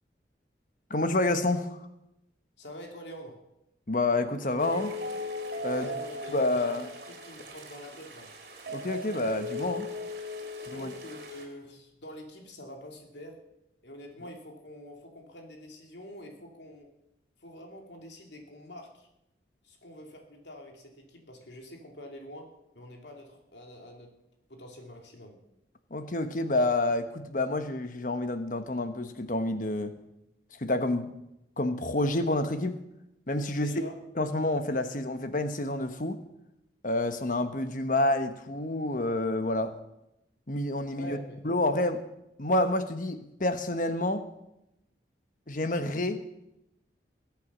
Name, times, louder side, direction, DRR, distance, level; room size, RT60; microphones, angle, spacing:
voice 1, 0.9-1.8 3.9-5.0 5.6-5.9 6.3-6.9 8.7-9.9 10.7-10.9 25.9-30.0 30.6-31.1 31.6-32.8 33.3-33.7 34.2-36.2 36.8-39.7 40.5-41.2 41.4-42.0 42.4-44.3 45.5-46.2, left 2 dB, 45° left, 9 dB, 1.2 m, -28 dB
voice 2, 2.6-3.4 5.7-6.8 7.1-8.3 10.6-13.4 13.8-16.9 17.4-19.1 19.6-24.1 24.5-25.4 33.5-34.0 40.8-41.4, equal, 75° left, 2 dB, 2.8 m, -46 dB
sound 1, 4.6-11.5, left 2 dB, 60° right, 3.6 m, -38 dB
21.0 x 8.3 x 6.2 m, 0.87 s
head